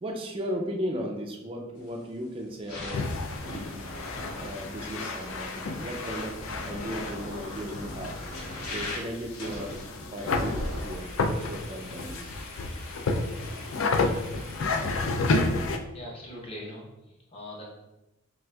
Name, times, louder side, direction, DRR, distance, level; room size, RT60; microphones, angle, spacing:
voice 1, 0.0-3.0 3.5-3.9 4.4-8.2 8.7-9.8 10.1-12.3, equal, 25° right, 1 dB, 0.3 m, -36 dB
sound 1, 1.8-2.1 2.5-15.0, left 1 dB, 85° left, 1.0 m, -41 dB
sound 2, 2.9-15.8, left 3 dB, 65° left, 0.4 m, -31 dB
voice 2, 15.9-17.7, left 1 dB, 25° left, -2 dB, 0.8 m, -42 dB
6.0 x 2.4 x 2.3 m, 0.99 s
head